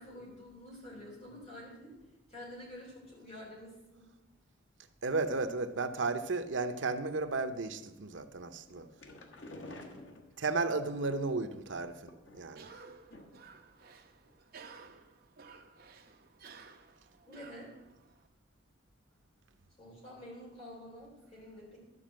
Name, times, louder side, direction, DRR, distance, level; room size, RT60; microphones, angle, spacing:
voice 1, 0.0-1.9 2.3-4.1 17.3-17.7 19.8-21.8, left 1 dB, 35° left, -5 dB, 3.6 m, -48 dB
voice 2, 5.0-8.9 10.4-12.7, right 3 dB, 75° right, 8 dB, 0.8 m, -34 dB
sound 1, 8.7-10.8 11.8-12.7 13.1-13.5 13.8-13.9 14.2-14.3, left 1 dB, 75° left, 1.3 m, -50 dB
Cough, 12.5-18.3, right 5 dB, 50° right, 0.8 m, -55 dB
12.5 x 5.3 x 7.6 m, 0.96 s
head